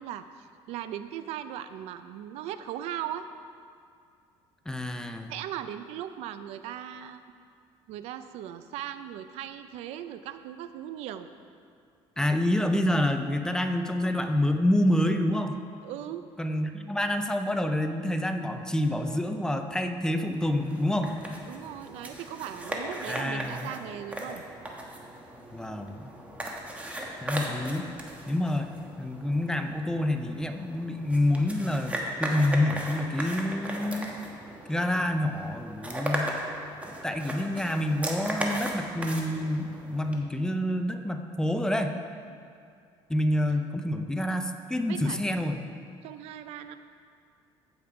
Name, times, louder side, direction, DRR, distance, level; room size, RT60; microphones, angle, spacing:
voice 1, 0.0-3.3 5.3-7.4 7.9-11.3 15.8-16.3 21.5-24.4 27.5-27.7 42.3-42.4 43.5-43.6 44.9-45.6 46.0-46.8, right 11 dB, 75° right, 11 dB, 0.5 m, -38 dB
voice 2, 4.7-5.3 12.2-15.6 16.4-21.2 23.1-23.7 25.5-26.1 27.2-27.9 28.3-28.7 29.0-34.1 34.7-36.4 36.8-42.0 43.1-45.6, left 1 dB, 5° left, 6 dB, 0.5 m, -27 dB
sound 1, 20.3-40.2, right 1 dB, 15° right, 1.2 m, -37 dB
15.0 x 5.4 x 4.8 m, 2.3 s
cardioid pair, 135°, 11 cm